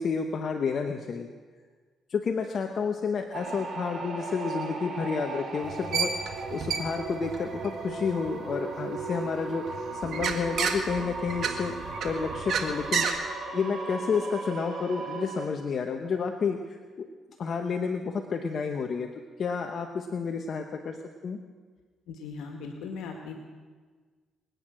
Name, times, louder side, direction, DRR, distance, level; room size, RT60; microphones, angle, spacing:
voice 1, 0.0-1.3 2.1-11.7 12.0-13.1 13.5-17.1 17.4-19.1 19.4-21.0 21.2-21.4, left 5 dB, 55° left, 4 dB, 1.0 m, -30 dB
sound 1, 3.3-15.5, right 3 dB, 50° right, 3.9 m, -37 dB
sound 2, 5.6-9.1 9.5-13.1, right 6 dB, 65° right, 1.9 m, -31 dB
voice 2, 22.1-23.3, left 5 dB, 90° left, 3 dB, 1.8 m, -38 dB
23.5 x 9.3 x 6.4 m, 1.5 s
cardioid pair, 90°, 0 cm